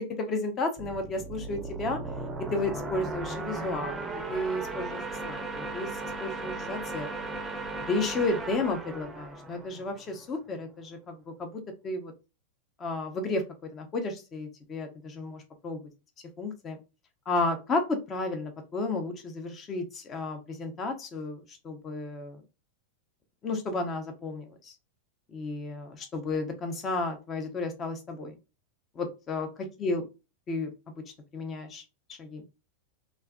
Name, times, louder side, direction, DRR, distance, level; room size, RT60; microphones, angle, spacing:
voice 1, 0.2-2.0 2.5-5.9 6.2-7.1 7.9-12.1 12.8-13.4 13.7-15.8 16.4-16.8 17.3-22.4 23.4-24.7 25.3-28.4 29.0-29.5 29.8-30.1 30.5-30.7 31.3-31.8 32.2-32.4, left 2 dB, 25° left, 6 dB, 0.8 m, -32 dB
sound 1, 0.8-10.3, right 3 dB, 10° right, 0.6 m, -37 dB
3.4 x 2.5 x 2.2 m, 0.28 s
figure-of-eight pair, 90°, 0 cm